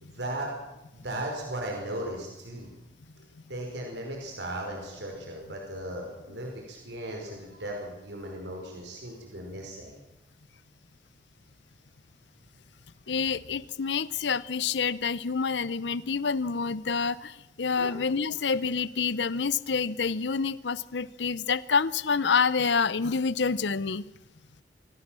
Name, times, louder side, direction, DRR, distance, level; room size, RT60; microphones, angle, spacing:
voice 1, 0.0-0.5 0.9-2.7 3.5-10.0 17.8-17.9, right 1 dB, 85° right, 1 dB, 5.0 m, -37 dB
voice 2, 13.1-24.0, left 5 dB, 85° left, 18 dB, 0.7 m, -27 dB
27.0 x 17.0 x 7.6 m, 0.95 s
head